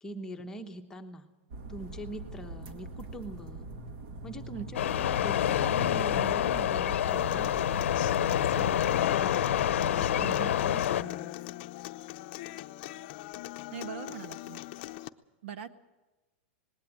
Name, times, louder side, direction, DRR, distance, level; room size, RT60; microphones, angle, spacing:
voice 1, 0.0-1.3 1.7-3.7 4.2-11.3, equal, 10° left, 4 dB, 1.1 m, -43 dB
sound 1, 1.5-10.3, right 2 dB, 50° right, 2.0 m, -43 dB
sound 2, 4.7-11.0, left 11 dB, 85° left, 0.7 m, -27 dB
Human voice / Acoustic guitar, 7.1-15.1, left 16 dB, 40° left, 0.7 m, -41 dB
voice 2, 10.2-10.8 13.7-14.6 15.4-15.7, right 9 dB, 70° right, 10 dB, 1.6 m, -42 dB
19.5 x 17.0 x 8.9 m, 1.1 s
supercardioid pair, 165°, 7 cm